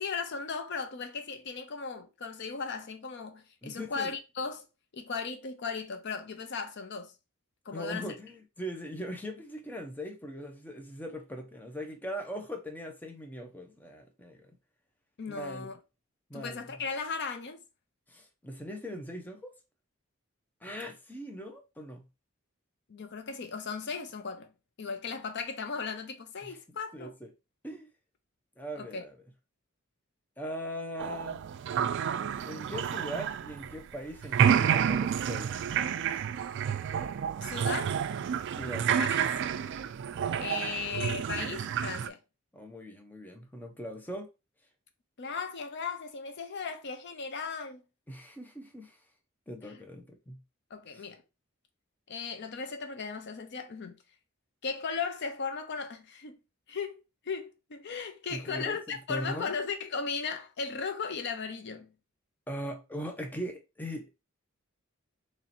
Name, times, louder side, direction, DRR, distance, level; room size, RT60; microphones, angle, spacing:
voice 1, 0.0-4.7 4.9-7.1 7.7-8.1 15.2-15.8 16.3-17.6 22.9-24.5 24.8-27.1 28.8-29.0 37.4-38.0 39.0-39.3 40.4-42.2 45.2-47.8 49.6-49.8 50.7-51.2 52.1-54.0 54.6-56.4 56.7-56.9 57.3-61.9, left 5 dB, 55° left, 0.6 m, -36 dB
voice 2, 3.6-4.1 7.7-14.5 15.3-15.7 16.3-16.6 18.1-19.5 20.6-22.0 26.4-26.6 26.9-27.1 27.6-27.9 28.6-29.2 30.4-31.4 32.5-35.6 36.1-36.3 38.5-38.9 42.5-44.3 48.1-49.0 49.5-50.4 50.9-51.0 58.3-58.8 59.1-59.5 62.5-64.2, equal, 10° left, 0.6 m, -40 dB
sound 1, 31.0-34.0 34.2-42.1, right 8 dB, 60° right, 0.3 m, -29 dB
3.1 x 2.9 x 4.1 m
head